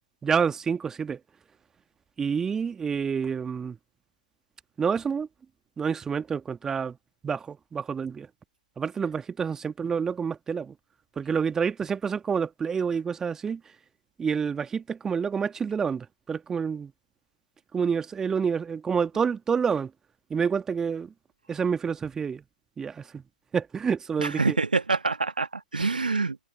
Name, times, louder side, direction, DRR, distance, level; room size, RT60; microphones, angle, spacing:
voice 1, 0.2-1.2 2.2-3.8 4.8-5.3 5.8-7.0 7.2-8.3 8.8-10.7 11.1-13.6 14.2-16.9 17.7-19.9 20.3-21.1 21.5-22.4 22.8-23.2 23.5-24.6, right 6 dB, 10° right, 1.8 m, -28 dB
voice 2, 24.2-26.4, right 3 dB, 75° right, 1.5 m, -26 dB
figure-of-eight pair, 125°, 5 cm